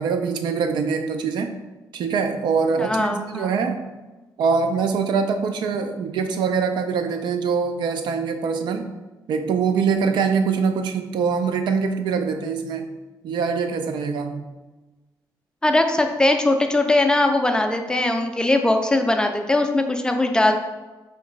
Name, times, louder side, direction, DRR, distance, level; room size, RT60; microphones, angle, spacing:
voice 1, 0.0-1.5 1.9-3.8 4.4-8.9 9.3-12.9 13.2-14.5, right 5 dB, 90° right, 7 dB, 0.4 m, -23 dB
voice 2, 2.8-3.5 15.6-20.5, left 2 dB, 10° left, 4 dB, 0.3 m, -20 dB
3.2 x 2.9 x 4.6 m, 1.2 s
cardioid pair, 140°, 7 cm